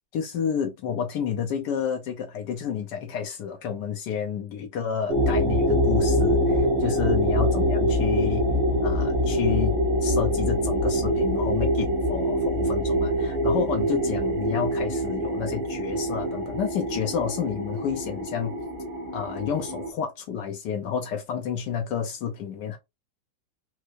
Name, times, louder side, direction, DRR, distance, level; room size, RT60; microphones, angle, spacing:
voice 1, 0.1-8.5 8.8-9.7 10.0-18.6 19.1-22.8, left 8 dB, 75° left, 1.2 m, -30 dB
sound 1, 5.1-19.9, equal, 55° right, 0.7 m, -25 dB
4.4 x 2.0 x 2.5 m
omnidirectional pair, 2.0 m